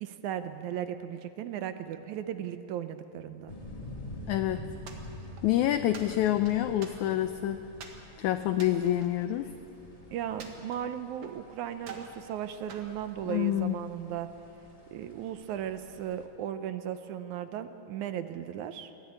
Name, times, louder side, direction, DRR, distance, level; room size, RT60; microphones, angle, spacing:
voice 1, 0.0-3.5 10.1-14.3 14.9-18.9, right 10 dB, 75° right, 10 dB, 1.9 m, -36 dB
sound 1, 3.5-16.3, left 1 dB, 15° left, 1.2 m, -47 dB
voice 2, 4.3-4.6 5.4-7.6 8.2-9.5 13.3-13.8, left 13 dB, 85° left, 9 dB, 1.7 m, -27 dB
sound 2, 4.9-5.5 5.9-7.3 7.8-8.0 8.5-9.9 10.4-11.4 11.8-12.2 12.7-13.7, right 5 dB, 55° right, 2.6 m, -48 dB
21.5 x 14.0 x 9.6 m, 2.8 s
omnidirectional pair, 4.0 m